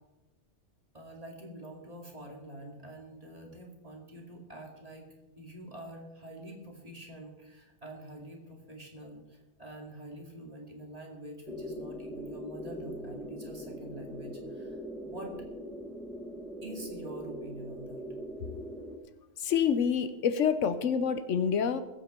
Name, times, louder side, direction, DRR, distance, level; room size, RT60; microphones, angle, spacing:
voice 1, 0.9-5.1 5.4-15.3 16.6-18.1, right 1 dB, 30° right, 0 dB, 2.5 m, -46 dB
sound 1, 11.5-19.0, equal, ahead, 1.3 m, -41 dB
voice 2, 19.4-21.8, left 7 dB, 80° left, 12 dB, 1.1 m, -27 dB
21.0 x 8.3 x 4.4 m, 1.1 s
omnidirectional pair, 1.3 m